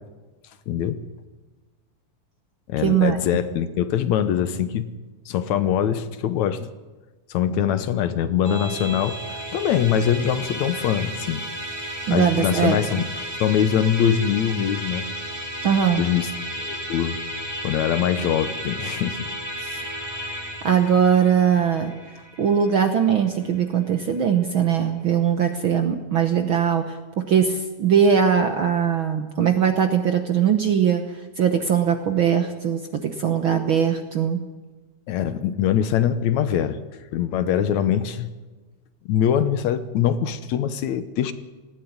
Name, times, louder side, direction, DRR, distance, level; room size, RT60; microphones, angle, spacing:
voice 1, 0.7-1.0 2.7-4.9 5.3-6.7 7.3-11.4 12.1-13.1 13.4-15.1 16.0-16.3 16.6-17.2 17.6-19.3 35.1-36.8 37.1-38.3 39.1-41.3, left 9 dB, 70° left, 12 dB, 2.2 m, -23 dB
voice 2, 2.8-3.2 12.1-12.8 15.6-16.0 19.6-19.8 20.2-21.9 22.4-31.0 31.4-34.4, right 8 dB, 60° right, 7 dB, 1.4 m, -21 dB
Musical instrument, 8.4-24.0, equal, 10° right, 2.4 m, -33 dB
19.5 x 15.5 x 9.5 m, 1.3 s
omnidirectional pair, 3.5 m